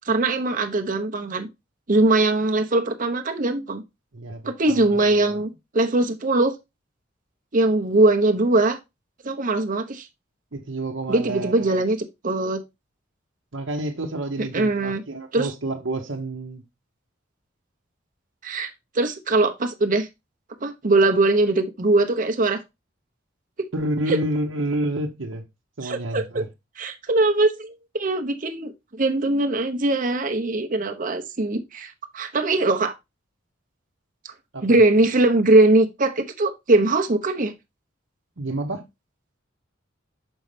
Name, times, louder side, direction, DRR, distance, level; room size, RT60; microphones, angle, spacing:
voice 1, 0.1-1.5 1.9-3.8 4.4-6.5 7.5-8.8 9.2-10.1 11.1-12.0 12.2-12.6 14.5-15.0 15.3-15.5 18.4-20.1 20.6-22.6 24.1-24.2 25.8-26.4 26.8-28.7 29.0-32.9 34.2-34.3 34.6-37.5, right 2 dB, 45° right, 0.8 m, -21 dB
voice 2, 4.1-5.4 10.5-11.8 13.5-16.6 23.7-25.4 25.8-26.4 34.5-34.8 38.4-38.8, right 1 dB, 70° right, 1.0 m, -29 dB
6.3 x 5.3 x 3.2 m
head